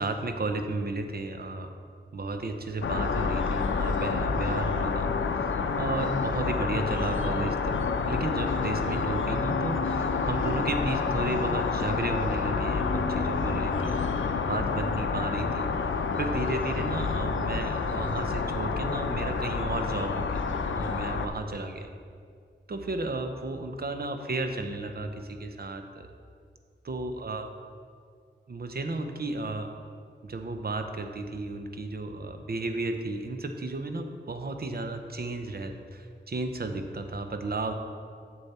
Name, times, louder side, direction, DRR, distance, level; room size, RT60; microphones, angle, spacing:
voice 1, 0.0-1.7 2.1-7.8 8.1-20.5 20.7-21.9 22.7-26.1 26.8-27.5 28.5-29.7 30.2-37.7, right 2 dB, 55° right, 6 dB, 0.7 m, -33 dB
sound 1, 2.8-21.3, left 4 dB, 85° left, 0.5 m, -28 dB
7.1 x 6.7 x 4.2 m, 2.2 s
wide cardioid pair, 100°, 20 cm